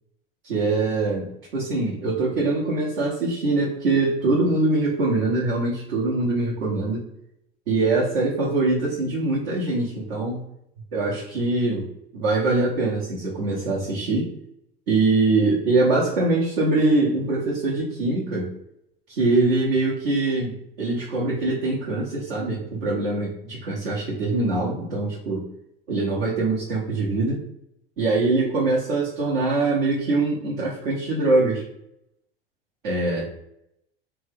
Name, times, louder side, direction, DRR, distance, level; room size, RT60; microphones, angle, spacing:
voice 1, 0.4-7.0 7.7-10.4 10.9-11.9 12.1-14.3 14.9-18.5 19.1-25.4 25.9-27.4 28.0-31.6 32.8-33.2, right 2 dB, 70° right, -5 dB, 0.9 m, -23 dB
3.1 x 2.2 x 3.3 m, 0.79 s
figure-of-eight pair, 75°, 29 cm